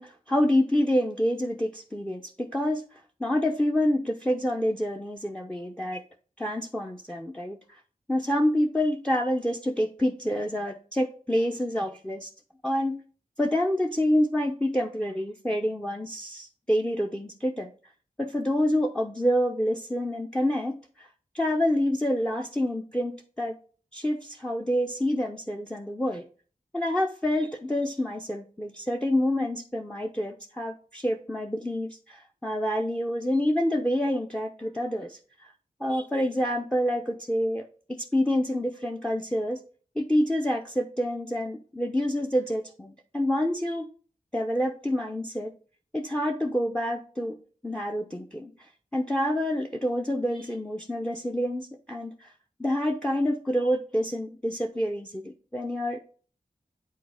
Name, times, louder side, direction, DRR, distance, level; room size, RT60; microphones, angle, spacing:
voice 1, 0.0-2.8 3.2-6.0 6.4-7.8 8.1-12.3 12.6-13.0 13.4-17.7 18.2-21.1 21.3-23.6 23.9-26.2 26.7-35.5 35.8-39.6 40.0-43.9 44.3-45.5 45.9-47.4 47.6-48.5 48.9-52.3 52.6-56.0, equal, 5° left, 4 dB, 0.6 m, -27 dB
8.5 x 4.3 x 3.4 m, 0.40 s
wide cardioid pair, 75°, 15 cm